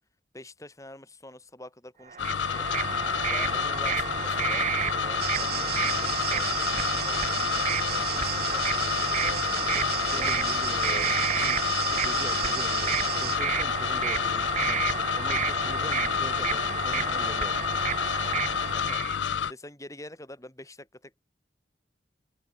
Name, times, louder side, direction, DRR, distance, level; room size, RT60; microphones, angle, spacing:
voice 1, 0.3-2.7 3.3-7.3 7.9-10.7 18.6-19.0 19.5-21.2, left 1 dB, 20° left, 7.9 m, -46 dB
sound 1, 2.1-19.2, right 7 dB, 40° right, 0.9 m, -31 dB
sound 2, 2.2-19.5, left 8 dB, 90° left, 0.5 m, -29 dB
sound 3, 5.2-13.4, right 11 dB, 60° right, 5.9 m, -34 dB
voice 2, 10.1-17.6, equal, 15° right, 3.0 m, -43 dB
head